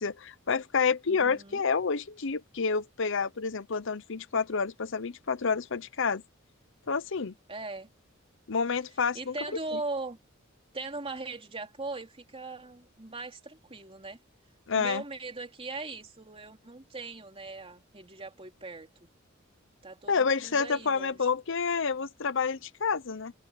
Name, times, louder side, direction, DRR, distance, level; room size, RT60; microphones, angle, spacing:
voice 1, 0.0-6.2 6.9-7.3 8.5-9.3 9.7-9.8 14.7-15.0 20.1-23.3, left 5 dB, 70° left, 0.8 m, -29 dB
voice 2, 1.1-1.6 7.5-7.9 9.1-10.2 10.7-14.2 14.7-19.1 19.8-21.2, right 3 dB, 30° right, 3.3 m, -39 dB
head